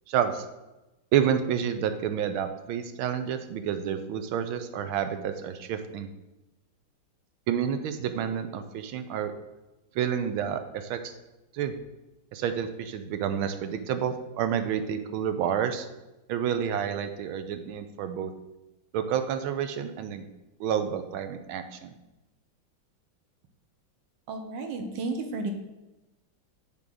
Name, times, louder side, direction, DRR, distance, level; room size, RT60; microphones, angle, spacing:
voice 1, 0.1-0.4 1.1-6.1 7.5-9.3 9.9-11.1 11.5-11.7 12.3-15.9 16.3-18.3 18.9-20.2 20.6-21.9, right 8 dB, 85° right, 9 dB, 1.5 m, -29 dB
voice 2, 24.3-25.5, right 3 dB, 70° right, 5 dB, 1.5 m, -32 dB
7.4 x 3.8 x 6.1 m, 1.0 s
omnidirectional pair, 2.2 m